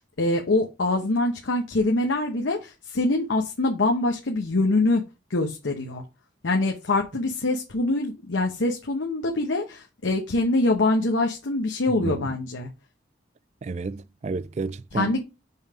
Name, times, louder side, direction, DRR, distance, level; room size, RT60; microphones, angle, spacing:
voice 1, 0.0-5.0 5.3-6.0 6.4-12.7 14.9-15.2, left 2 dB, 85° left, 0.9 m, -24 dB
voice 2, 12.0-12.4 13.6-15.2, right 3 dB, 35° right, 0.3 m, -31 dB
5.5 x 3.5 x 5.5 m
head